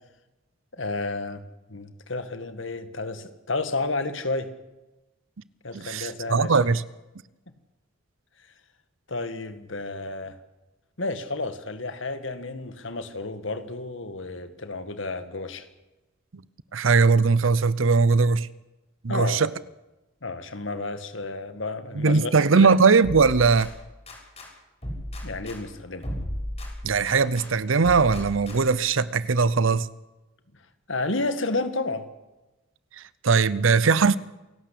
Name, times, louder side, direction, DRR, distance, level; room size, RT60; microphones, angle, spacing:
voice 1, 0.7-1.4 1.7-4.5 5.6-6.7 9.1-10.4 11.0-15.7 19.1-19.5 20.2-22.7 25.2-26.1 30.9-32.1, left 3 dB, 70° left, 1.9 m, -31 dB
voice 2, 5.7-6.8 16.7-18.5 19.0-19.5 22.0-23.7 26.8-29.9 33.2-34.2, right 4 dB, 80° right, 0.7 m, -20 dB
sound 1, 23.0-24.5 24.8-27.5 27.8-28.9, equal, 35° left, 6.7 m, -36 dB
28.0 x 12.0 x 8.4 m
head